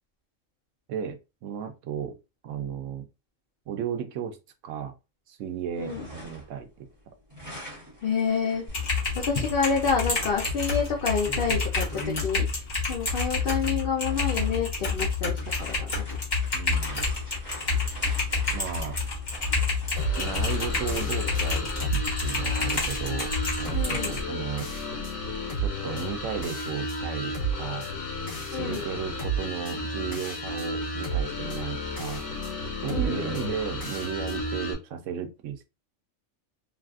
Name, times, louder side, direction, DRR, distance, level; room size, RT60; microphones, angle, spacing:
voice 1, 0.9-2.2 2.4-3.1 3.7-4.4 4.6-4.9 5.3-6.9 16.5-17.0 18.5-19.0 20.2-21.9 22.2-23.3 23.6-24.7 25.6-27.9 28.5-32.2 32.8-35.6, right 8 dB, 75° right, 0.9 m, -34 dB
sound 1, 5.6-6.6 6.9-12.3 13.1-13.3 13.8-21.6, equal, 15° right, 1.2 m, -44 dB
voice 2, 8.0-8.6 9.2-12.6 12.9-15.3 15.6-16.2 23.7-24.1 28.5-28.8 32.9-33.2, left 5 dB, 55° left, 0.7 m, -28 dB
Typing, 8.7-24.2, left 4 dB, 35° left, 1.3 m, -29 dB
sound 2, 20.0-34.7, right 1 dB, 90° left, 1.5 m, -32 dB
3.2 x 2.4 x 2.4 m
omnidirectional pair, 1.4 m